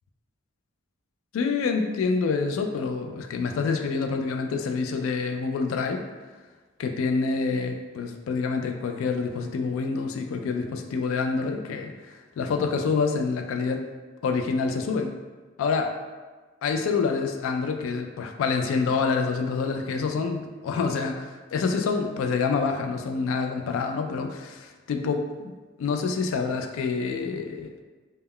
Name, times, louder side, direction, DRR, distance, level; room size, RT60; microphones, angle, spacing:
voice 1, 1.3-6.0 6.8-11.9 12.4-13.8 14.2-15.1 15.6-16.0 16.6-25.5 25.8-27.8, left 4 dB, 90° left, 4 dB, 0.3 m, -27 dB
2.2 x 2.1 x 3.5 m, 1.3 s
head